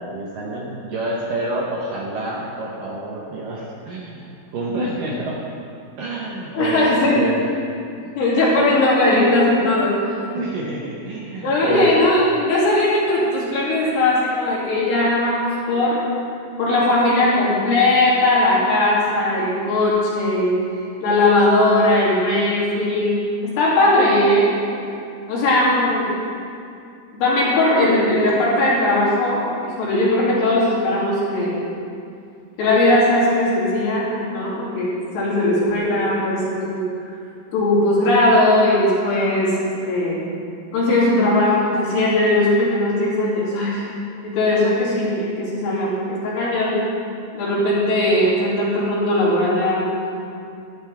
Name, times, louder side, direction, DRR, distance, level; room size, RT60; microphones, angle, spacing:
voice 1, 0.0-5.4 6.0-7.5 8.0-8.2 8.5-8.6 10.3-11.9, right 2 dB, 65° right, -4 dB, 2.3 m, -28 dB
voice 2, 6.5-7.2 8.2-10.2 11.4-16.0 16.6-20.6 21.0-24.6 25.3-26.1 27.1-31.6 32.6-36.9 37.5-40.3 40.7-43.8 44.2-46.8 47.3-50.2, left 1 dB, 70° left, -8 dB, 5.0 m, -19 dB
14.5 x 12.0 x 3.6 m, 2.5 s
omnidirectional pair, 5.0 m